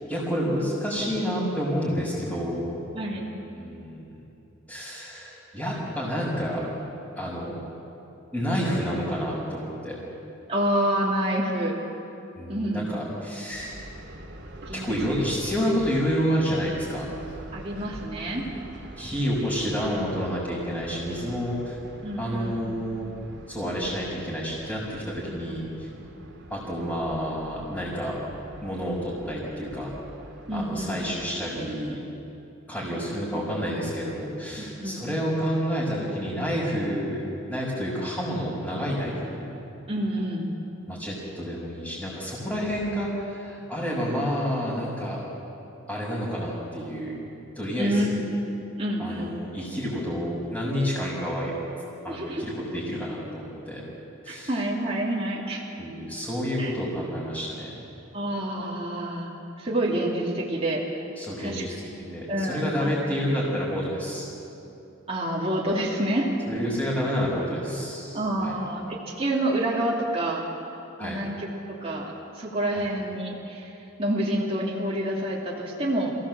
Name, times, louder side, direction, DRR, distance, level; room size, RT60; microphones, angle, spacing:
voice 1, 0.1-2.9 3.1-3.2 3.5-4.1 4.7-6.6 7.1-7.5 8.3-10.0 12.4-13.8 14.7-17.1 19.0-21.7 22.2-23.1 23.5-25.9 26.5-28.2 28.6-29.9 30.5-32.0 32.7-37.2 37.5-39.4 40.9-45.2 45.9-47.1 47.5-48.2 49.0-51.5 52.0-53.8 54.2-54.5 55.8-57.7 61.2-64.3 66.5-68.5 71.0-71.2 72.7-72.8, equal, 5° left, -10 dB, 5.1 m, -29 dB
voice 2, 10.5-11.8 12.5-12.9 14.7-14.9 17.5-18.4 22.0-22.6 25.3-25.8 30.5-31.0 34.6-35.0 39.9-40.5 47.8-48.3 48.8-49.3 52.1-52.5 54.3-55.6 56.6-56.7 58.1-59.3 59.6-61.0 61.4-61.6 62.3-62.9 65.1-66.3 68.1-70.5 71.0-73.7 74.0-76.1, right 1 dB, 25° right, -4 dB, 2.7 m, -28 dB
sound 1, 13.5-31.3, right 1 dB, 55° right, 2.7 m, -44 dB
28.0 x 17.0 x 7.6 m, 2.9 s
head